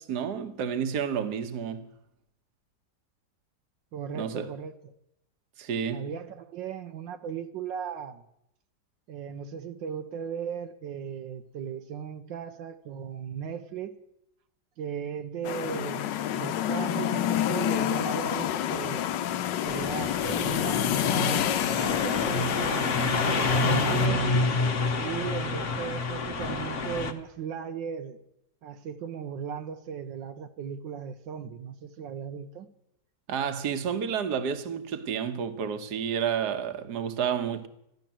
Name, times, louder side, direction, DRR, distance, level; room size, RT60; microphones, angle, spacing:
voice 1, 0.0-1.8 4.1-4.5 5.6-6.1 33.3-37.7, right 7 dB, 65° right, 1.7 m, -30 dB
voice 2, 3.9-4.9 5.9-8.2 9.1-14.0 14.8-19.1 19.6-23.0 23.3-24.5 25.0-28.2 28.6-32.7, right 8 dB, 85° right, 1.6 m, -37 dB
sound 1, 15.4-24.1, left 11 dB, 75° left, 1.4 m, -28 dB
sound 2, 19.7-27.1, left 3 dB, 45° left, 1.3 m, -28 dB
14.0 x 12.0 x 7.4 m
omnidirectional pair, 1.9 m